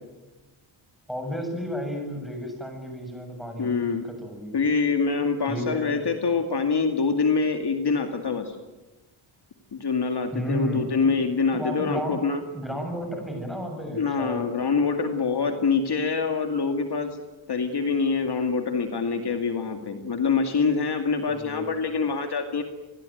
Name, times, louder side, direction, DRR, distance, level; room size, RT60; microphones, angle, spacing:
voice 1, 1.1-4.6 5.4-5.9 10.3-11.1 11.5-12.2 12.5-14.4 21.3-21.7, equal, ahead, 4 dB, 7.9 m, -32 dB
voice 2, 3.6-4.1 4.5-8.6 9.7-12.4 13.9-17.2 17.5-22.6, left 4 dB, 50° left, 5 dB, 2.3 m, -25 dB
28.5 x 21.0 x 9.3 m, 1.1 s
wide cardioid pair, 140°, 50 cm